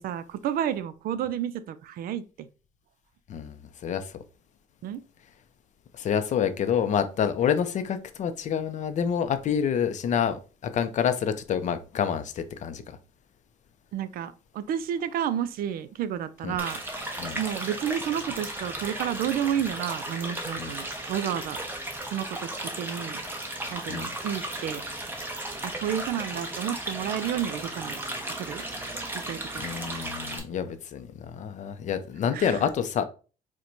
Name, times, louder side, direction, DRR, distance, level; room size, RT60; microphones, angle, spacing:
voice 1, 0.0-2.5 4.8-5.0 13.9-16.8 17.3-21.6 22.1-22.5 22.7-23.2 23.7-24.8 25.6-28.0 28.4-28.6 29.3-29.7 32.3-32.6, right 9 dB, 60° right, 0.4 m, -31 dB
voice 2, 3.3-4.1 5.9-13.0 16.4-16.6 17.2-17.4 20.6-20.7 23.6-24.1 29.6-33.0, left 8 dB, 45° left, 0.4 m, -28 dB
sound 1, 16.6-30.4, right 1 dB, 10° right, 0.7 m, -35 dB
4.3 x 2.1 x 2.5 m
cardioid pair, 110°, 17 cm